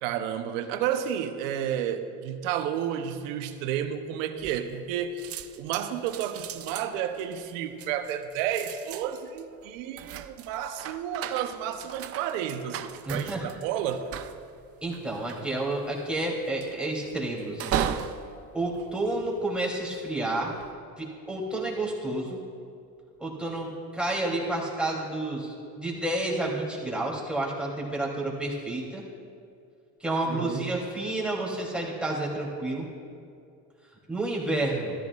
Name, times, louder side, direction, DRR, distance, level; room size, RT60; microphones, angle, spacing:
voice 1, 0.0-5.2 5.6-14.1 30.3-30.8, right 9 dB, 85° right, 9 dB, 0.8 m, -31 dB
sound 1, 4.4-4.9 5.2-19.7 20.3-20.7, right 10 dB, 40° right, 0.5 m, -37 dB
voice 2, 13.0-13.4 14.8-17.9 18.5-20.5 21.0-22.4 23.2-29.0 30.0-32.9 34.1-34.9, right 2 dB, 5° right, -4 dB, 2.9 m, -30 dB
13.5 x 13.0 x 2.4 m, 2.4 s
supercardioid pair, 85°, 38 cm